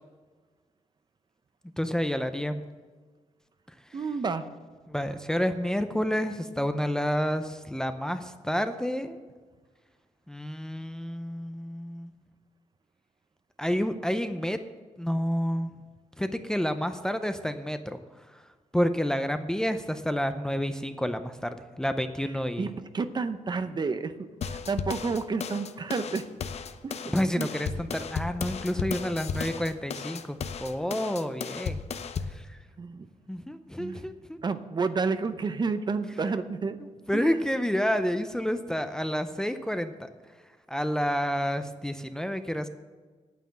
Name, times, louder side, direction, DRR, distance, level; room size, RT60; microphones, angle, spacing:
voice 1, 1.8-2.6 4.9-9.2 10.3-12.1 13.6-14.6 15.0-15.7 16.2-18.0 18.7-22.7 27.1-31.8 32.3-32.6 33.3-34.4 37.1-40.1 40.7-42.7, equal, 5° left, 9 dB, 0.6 m, -29 dB
voice 2, 3.9-4.4 22.6-24.1 24.4-26.2 26.8-27.5 32.8-33.1 33.8-34.0 34.4-36.8 37.1-37.4, right 4 dB, 35° right, 10 dB, 0.7 m, -30 dB
sound 1, 24.4-32.4, left 6 dB, 60° left, 0.7 m, -34 dB
9.3 x 9.2 x 7.4 m, 1.4 s
wide cardioid pair, 125°, 12 cm